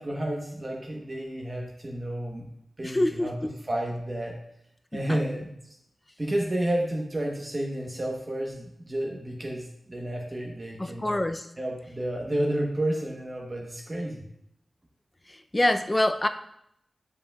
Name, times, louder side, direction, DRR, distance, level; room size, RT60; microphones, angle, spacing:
voice 1, 0.0-2.5 2.8-3.4 3.7-4.4 4.9-5.7 6.2-11.1 11.6-14.2, right 1 dB, 35° right, -1 dB, 1.0 m, -31 dB
voice 2, 2.8-3.5 4.9-5.2 10.8-11.5 15.3-16.3, left 1 dB, 20° left, 8 dB, 0.4 m, -26 dB
8.0 x 5.4 x 2.3 m, 0.75 s
wide cardioid pair, 80°, 0 cm